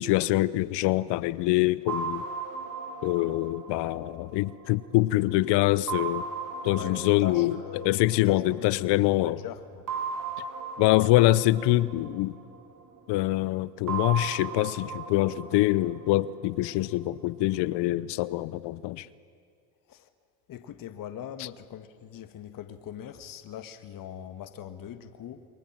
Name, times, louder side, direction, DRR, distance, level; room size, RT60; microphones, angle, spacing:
voice 1, 0.0-2.2 3.0-6.3 6.6-7.5 7.8-9.4 10.8-12.4 13.1-19.1, left 17 dB, 60° left, 19 dB, 0.9 m, -25 dB
sound 1, 1.9-5.2 5.9-8.8 9.9-13.0 13.9-17.0, right 5 dB, 45° right, 3.8 m, -37 dB
voice 2, 6.7-9.9 19.9-20.1 20.5-25.5, left 9 dB, 45° left, 9 dB, 1.6 m, -41 dB
28.5 x 23.5 x 7.4 m, 2.2 s
supercardioid pair, 90°, 46 cm